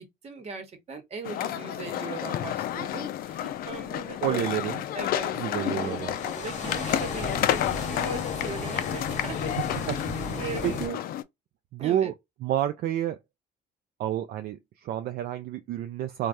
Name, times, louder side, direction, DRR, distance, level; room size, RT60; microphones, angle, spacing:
voice 1, 0.0-10.8 11.8-12.1, right 4 dB, 40° right, 1.1 m, -39 dB
sound 1, 1.2-11.2, left 12 dB, 60° left, 0.4 m, -31 dB
sound 2, 2.6-10.9, left 4 dB, 45° left, 1.1 m, -36 dB
voice 2, 4.2-4.8 5.4-6.2 10.1-11.0 11.7-12.1 12.4-13.2 14.0-16.3, right 11 dB, 65° right, 0.4 m, -30 dB
3.2 x 2.3 x 2.6 m
cardioid pair, 110°, 17 cm